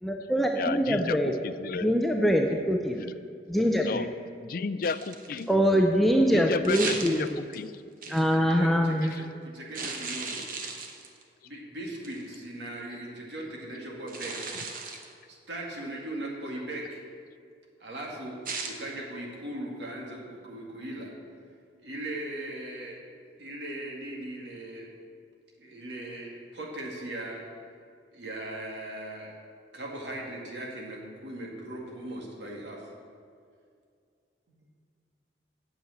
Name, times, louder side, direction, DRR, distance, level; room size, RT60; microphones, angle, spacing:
voice 1, 0.0-1.4 1.7-3.1 3.5-4.1 5.5-7.4 8.1-9.1, equal, ahead, 1 dB, 0.5 m, -24 dB
voice 2, 0.6-2.0 2.9-3.2 3.8-4.1 4.4-5.5 6.3-7.8 9.1-9.2 14.9-15.0, left 4 dB, 55° left, 14 dB, 0.4 m, -33 dB
sound 1, 4.8-5.5 6.6-7.6 8.0-8.3 9.7-11.2 12.0-12.3 14.1-15.1 18.5-18.8, right 4 dB, 50° right, 1.1 m, -36 dB
voice 3, 6.7-7.3 8.1-8.2 8.5-10.5 11.4-14.4 15.3-17.0 17.8-21.1 21.8-23.0 23.4-24.9 25.6-27.5 28.1-29.3 29.7-32.9 34.5-34.6, right 1 dB, 85° right, -2 dB, 2.0 m, -39 dB
8.5 x 7.4 x 7.8 m, 2.2 s
head